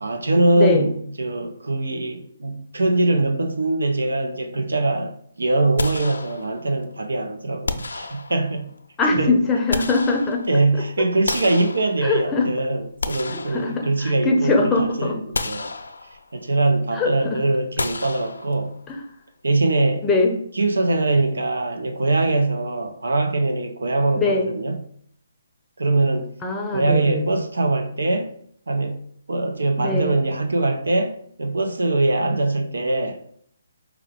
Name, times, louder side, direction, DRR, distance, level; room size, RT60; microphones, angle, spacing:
voice 1, 0.0-8.7 9.1-9.3 10.5-15.7 16.3-18.7 19.4-20.1 20.6-24.8 25.8-26.3 26.7-28.3 28.7-29.0 29.3-33.2, right 2 dB, 85° right, 0.7 m, -22 dB
voice 2, 0.6-0.9 9.0-10.4 12.0-12.5 13.3-15.2 16.9-17.4 18.9-19.0 20.0-20.4 24.2-24.5 26.4-27.4 29.8-30.2, left 3 dB, 10° left, 0.6 m, -22 dB
sound 1, 5.8-6.8 7.7-8.7 9.4-10.7 11.3-12.4 12.8-14.3 14.7-14.8 15.3-16.4 17.8-18.9, left 3 dB, 85° left, 0.4 m, -31 dB
4.6 x 2.3 x 3.7 m
hypercardioid pair, 155°, 0 cm